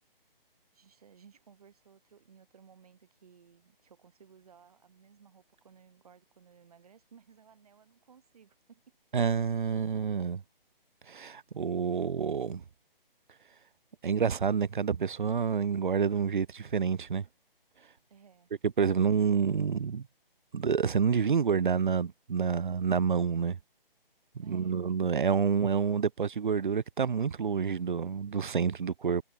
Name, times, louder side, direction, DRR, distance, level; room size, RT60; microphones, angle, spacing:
voice 1, 0.7-8.8 18.1-18.5 24.4-25.3, right 7 dB, 40° right, 5.9 m, -58 dB
voice 2, 9.1-10.4 11.1-12.6 14.0-17.3 18.6-20.1 20.5-23.6 24.5-29.2, right 6 dB, 60° right, 0.4 m, -28 dB
figure-of-eight pair, 145°, 29 cm